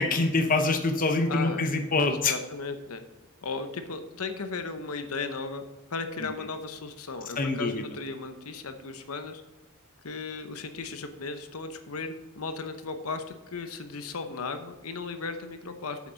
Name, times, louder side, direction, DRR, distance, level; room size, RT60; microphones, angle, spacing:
voice 1, 0.0-2.3 7.4-7.7, left 3 dB, 40° left, 6 dB, 0.8 m, -25 dB
voice 2, 1.3-1.6 2.1-3.0 3.4-5.6 5.9-9.4 10.0-13.2 13.5-16.0, left 4 dB, 75° left, 8 dB, 0.9 m, -36 dB
8.3 x 7.4 x 4.0 m, 1.1 s
head